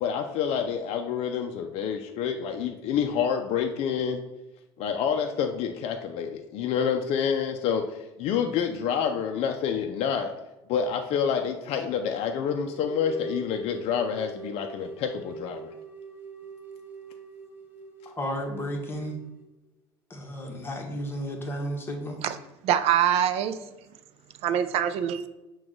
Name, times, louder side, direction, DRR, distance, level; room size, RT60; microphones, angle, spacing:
voice 1, 0.0-4.2 4.8-10.3 10.7-15.7, left 7 dB, 55° left, 4 dB, 0.4 m, -28 dB
sound 1, 12.7-19.4, right 3 dB, 15° right, 1.1 m, -42 dB
voice 2, 18.0-19.2 20.1-22.2 23.6-23.7, equal, 20° left, 1 dB, 1.1 m, -33 dB
voice 3, 22.6-23.6 24.4-25.3, right 10 dB, 55° right, 12 dB, 0.4 m, -24 dB
5.9 x 2.3 x 3.8 m, 0.99 s
hypercardioid pair, 75°, 13 cm